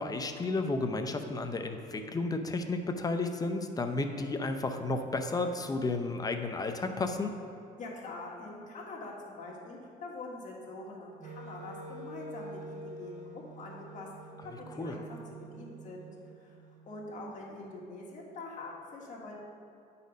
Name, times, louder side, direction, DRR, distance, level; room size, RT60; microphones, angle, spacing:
voice 1, 0.0-7.3 14.8-15.0, left 3 dB, 20° left, 6 dB, 0.6 m, -32 dB
voice 2, 7.8-14.1 14.4-16.6 16.8-19.3, left 2 dB, 50° left, -3 dB, 1.7 m, -44 dB
Wind instrument woodwind instrument, 11.2-17.2, right 2 dB, 50° right, 0.7 m, -47 dB
9.3 x 4.2 x 5.2 m, 2.6 s
cardioid pair, 110°, 17 cm